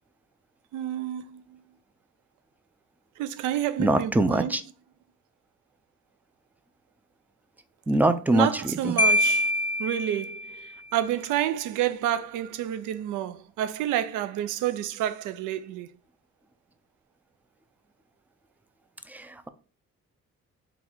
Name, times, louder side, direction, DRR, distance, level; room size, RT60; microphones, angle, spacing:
voice 1, 0.7-1.6 3.2-4.6 8.3-9.5 9.8-15.9, right 11 dB, 80° right, 0.5 m, -29 dB
voice 2, 3.8-4.6 7.9-8.5 8.8-8.9 19.1-19.5, right 1 dB, 5° right, 0.3 m, -23 dB
Marimba xylophone, 9.0-10.7, left 1 dB, 15° left, 0.7 m, -25 dB
3.9 x 2.4 x 4.4 m
cardioid pair, 90°, 30 cm